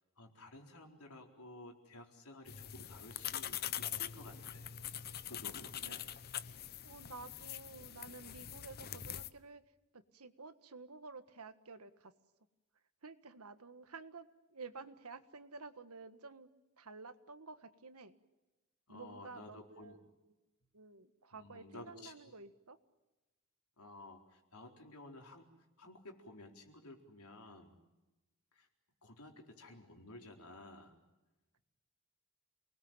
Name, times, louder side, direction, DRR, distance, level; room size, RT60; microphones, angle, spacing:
voice 1, 0.2-4.7 5.3-6.0 18.9-20.0 21.3-22.1 23.8-25.5 25.8-27.7 28.5-28.7 29.0-31.0, left 2 dB, 85° left, 3 dB, 4.3 m, -53 dB
sound 1, 2.5-9.3, left 10 dB, 45° left, 0.9 m, -43 dB
voice 2, 6.8-9.6 9.9-12.1 13.0-16.5 16.8-18.1 18.9-20.0 20.2-20.3 20.7-22.8, right 4 dB, 90° right, 10 dB, 1.7 m, -52 dB
28.5 x 20.5 x 9.2 m, 1.1 s
head